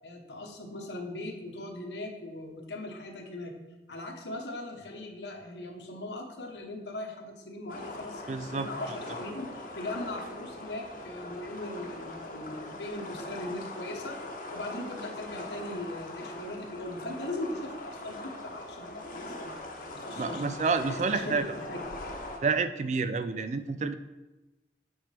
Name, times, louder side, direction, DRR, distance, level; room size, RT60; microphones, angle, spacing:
voice 1, 0.0-3.5 3.9-14.2 14.5-20.4 20.8-21.8, left 1 dB, 85° left, 2 dB, 1.2 m, -39 dB
sound 1, 7.7-22.4, left 2 dB, 50° left, 1.0 m, -41 dB
voice 2, 8.3-8.7 20.2-21.4 22.4-23.9, right 4 dB, 40° right, 10 dB, 0.3 m, -29 dB
7.8 x 5.8 x 3.4 m, 1.1 s
head